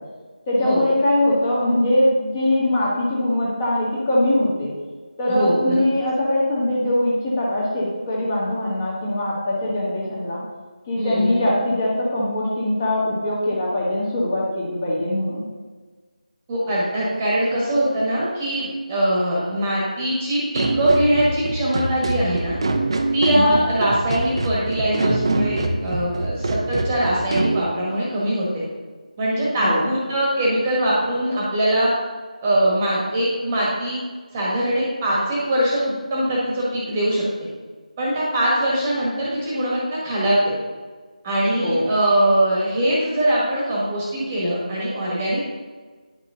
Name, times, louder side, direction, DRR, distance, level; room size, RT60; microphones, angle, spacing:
voice 1, 0.5-4.7 5.2-10.4 10.9-15.4 23.3-23.5 29.6-29.9 41.5-41.9, left 1 dB, 20° left, -5 dB, 1.8 m, -22 dB
voice 2, 5.3-5.8 11.0-11.4 16.5-22.6 23.1-28.6 29.2-31.9 32.4-34.0 34.3-37.2 38.0-40.5 41.2-45.4, right 1 dB, 15° right, -6 dB, 1.6 m, -22 dB
sound 1, 20.5-27.6, right 2 dB, 40° right, 0.8 m, -25 dB
10.0 x 6.1 x 3.9 m, 1.4 s
figure-of-eight pair, 170°, 4 cm